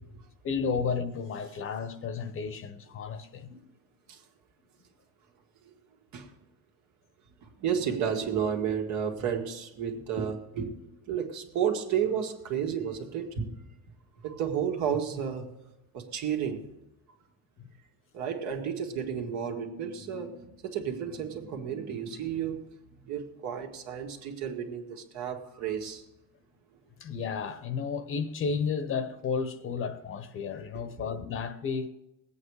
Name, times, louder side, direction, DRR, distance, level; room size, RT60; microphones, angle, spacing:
voice 1, 0.4-3.7 27.0-31.9, left 5 dB, 40° left, 1.0 m, -32 dB
voice 2, 7.4-13.7 14.2-15.5 15.9-16.7 18.1-22.6 23.0-26.0 30.7-31.0, right 8 dB, 60° right, 1.9 m, -32 dB
19.5 x 8.4 x 4.8 m
supercardioid pair, 105°, 31 cm